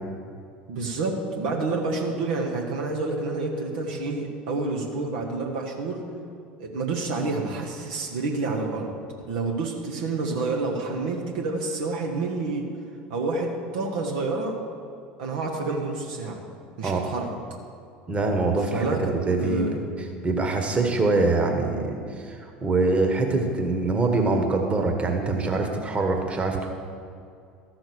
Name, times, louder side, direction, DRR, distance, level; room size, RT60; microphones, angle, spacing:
voice 1, 0.7-6.0 6.6-8.9 9.3-12.7 13.1-14.6 15.2-16.4 16.8-17.3 18.7-19.8, right 3 dB, 65° right, 0 dB, 1.2 m, -28 dB
voice 2, 16.8-17.1 18.1-19.7 20.2-22.0 22.3-26.7, right 3 dB, 25° right, 3 dB, 1.6 m, -24 dB
13.0 x 6.3 x 6.4 m, 2.3 s
figure-of-eight pair, 70°, 5 cm